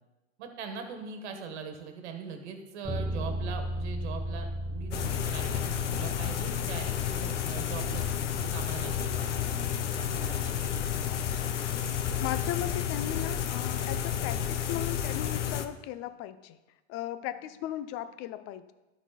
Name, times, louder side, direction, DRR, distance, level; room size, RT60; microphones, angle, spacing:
voice 1, 0.4-8.0 8.4-10.9, right 6 dB, 70° right, 5 dB, 1.5 m, -42 dB
Bass guitar, 2.8-12.7, equal, 5° left, 1.3 m, -38 dB
sound 1, 4.9-15.6, left 9 dB, 90° left, 0.8 m, -31 dB
voice 2, 12.2-16.6 16.9-18.7, left 12 dB, 40° left, 13 dB, 0.6 m, -37 dB
12.0 x 4.2 x 4.2 m, 1.1 s
hypercardioid pair, 110°, 35 cm